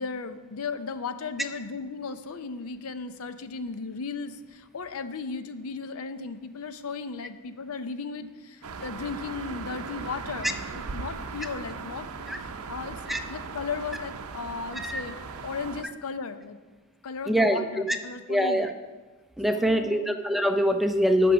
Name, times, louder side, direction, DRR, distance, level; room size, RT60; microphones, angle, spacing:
voice 1, 0.0-12.1 12.4-13.0 13.3-15.2 15.4-16.6 17.0-18.7 19.5-20.1, left 4 dB, 75° left, 11 dB, 0.5 m, -36 dB
sound 1, 8.6-15.8, right 5 dB, 90° right, 0.6 m, -38 dB
voice 2, 17.3-17.6 18.3-18.7 19.4-21.3, equal, ahead, 6 dB, 0.4 m, -23 dB
8.9 x 6.1 x 6.1 m, 1.3 s
head